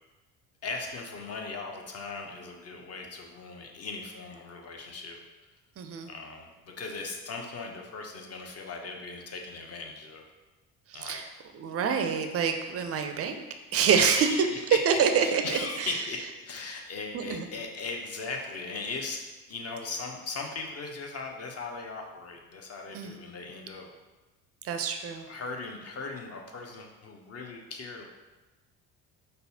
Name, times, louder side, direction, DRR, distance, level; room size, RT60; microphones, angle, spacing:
voice 1, 0.6-5.2 6.1-10.2 10.9-11.3 13.0-13.1 14.0-19.2 19.5-23.9 25.3-28.1, left 4 dB, 35° left, 2 dB, 0.7 m, -38 dB
voice 2, 5.8-6.1 10.9-11.2 11.5-13.4 13.7-14.3 14.9-15.9 17.1-17.5 22.9-23.1 24.6-25.2, right 6 dB, 35° right, 6 dB, 0.4 m, -27 dB
5.3 x 2.0 x 2.7 m, 1.1 s
hypercardioid pair, 60°, 45 cm